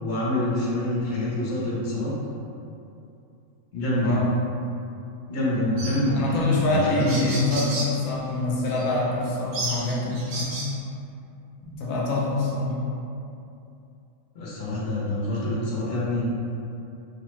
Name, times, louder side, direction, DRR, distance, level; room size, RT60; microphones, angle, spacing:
voice 1, 0.0-2.1 3.7-4.2 5.3-7.2 14.3-16.2, left 1 dB, 55° left, -7 dB, 0.9 m, -26 dB
voice 2, 3.9-4.5 6.1-10.6 11.6-12.8, left 2 dB, 85° left, -5 dB, 1.0 m, -25 dB
sound 1, 5.8-6.0 6.7-6.8 7.0-7.9 8.7-8.8 9.5-10.7, right 2 dB, 65° right, 0.9 m, -32 dB
3.2 x 2.0 x 3.1 m, 2.6 s
omnidirectional pair, 1.4 m